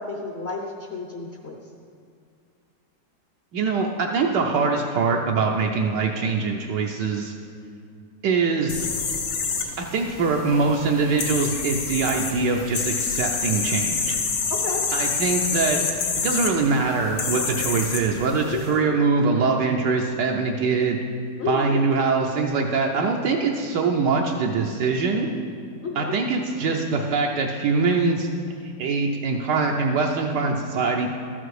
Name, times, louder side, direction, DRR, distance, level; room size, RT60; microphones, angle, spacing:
voice 1, 0.0-1.6 14.6-14.8 18.5-18.8 21.4-21.8 25.8-26.1, left 4 dB, 45° left, 1 dB, 0.9 m, -31 dB
voice 2, 3.5-7.3 8.2-8.9 9.8-14.2 14.9-15.8 16.2-21.0 21.5-25.3 25.9-28.3 28.6-31.1, right 4 dB, 75° right, 0 dB, 1.4 m, -23 dB
sound 1, 8.7-18.7, left 5 dB, 75° left, 1.7 m, -28 dB
13.0 x 8.0 x 4.8 m, 2.3 s
omnidirectional pair, 1.9 m